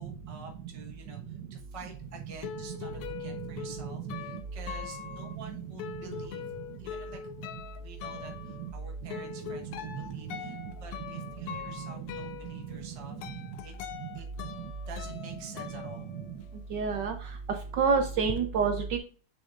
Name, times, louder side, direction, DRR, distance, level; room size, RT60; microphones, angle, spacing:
voice 1, 0.0-6.4 6.8-7.2 7.7-13.7 14.1-14.3 14.9-16.1, right 3 dB, 25° right, 2 dB, 0.8 m, -49 dB
sound 1, 1.9-16.7 16.9-18.4, left 9 dB, 90° left, 1.5 m, -42 dB
voice 2, 16.7-17.2 17.8-19.0, right 5 dB, 65° right, 5 dB, 1.2 m, -27 dB
7.2 x 6.5 x 2.5 m, 0.39 s
omnidirectional pair, 2.4 m